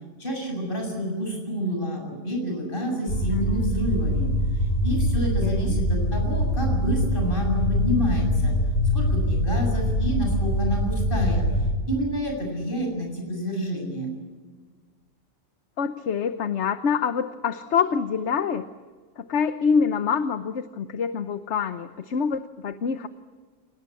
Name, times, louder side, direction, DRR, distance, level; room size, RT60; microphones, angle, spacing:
voice 1, 0.2-4.3 4.8-8.5 8.9-11.5 11.9-14.1, equal, 40° left, 1 dB, 8.1 m, -28 dB
sound 1, 3.1-11.7, equal, 80° left, 4.6 m, -24 dB
voice 2, 5.4-5.8 15.8-18.7 19.2-23.1, left 6 dB, 60° left, 10 dB, 1.2 m, -26 dB
28.0 x 18.5 x 8.4 m, 1.5 s
omnidirectional pair, 1.4 m